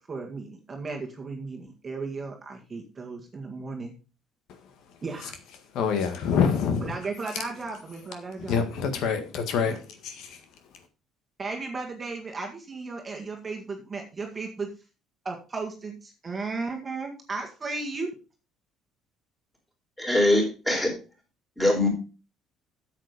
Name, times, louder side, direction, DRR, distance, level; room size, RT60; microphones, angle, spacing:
voice 1, 0.1-3.9 5.0-5.3 6.8-8.6 9.7-9.8 11.4-14.7 15.3-18.1, right 3 dB, 20° right, 1.8 m, -35 dB
voice 2, 5.7-6.9 8.5-9.8 10.0-10.4, left 6 dB, 65° left, 1.6 m, -26 dB
voice 3, 20.0-20.9 21.6-21.9, left 1 dB, 5° left, 4.3 m, -22 dB
8.9 x 7.6 x 5.0 m
cardioid pair, 140°, 0 cm